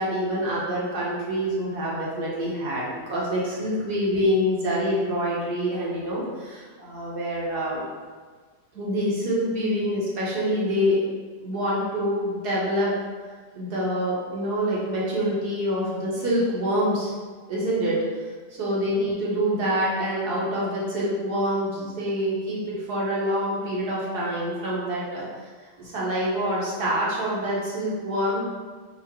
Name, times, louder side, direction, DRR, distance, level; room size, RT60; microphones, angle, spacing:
voice 1, 0.0-7.8 8.7-11.0 11.4-12.9 13.6-17.1 17.5-18.0 18.6-25.3 25.8-28.4, equal, 85° right, -6 dB, 2.1 m, -26 dB
5.6 x 3.7 x 4.6 m, 1.5 s
omnidirectional pair, 1.6 m